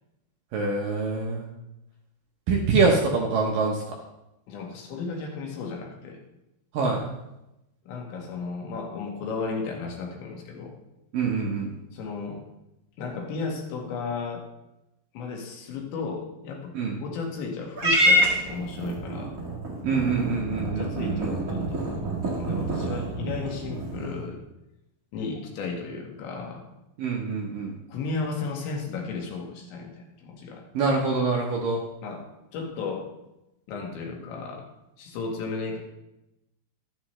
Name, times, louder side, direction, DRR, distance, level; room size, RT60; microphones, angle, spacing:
voice 1, 0.5-1.5 2.5-3.8 6.7-7.0 11.1-11.7 16.7-17.0 19.8-21.3 27.0-27.7 30.7-31.8, right 4 dB, 70° right, -1 dB, 2.2 m, -25 dB
voice 2, 4.5-6.2 7.9-10.7 11.9-12.4 13.0-14.5 15.1-16.7 17.0-19.3 20.7-24.4 25.1-26.7 27.9-30.6 32.0-33.1 33.7-34.7 35.0-35.8, left 4 dB, 85° left, 1 dB, 4.0 m, -34 dB
Purr / Meow, 17.8-24.3, equal, 40° right, 1.2 m, -27 dB
12.0 x 10.5 x 3.2 m, 0.91 s
omnidirectional pair, 5.1 m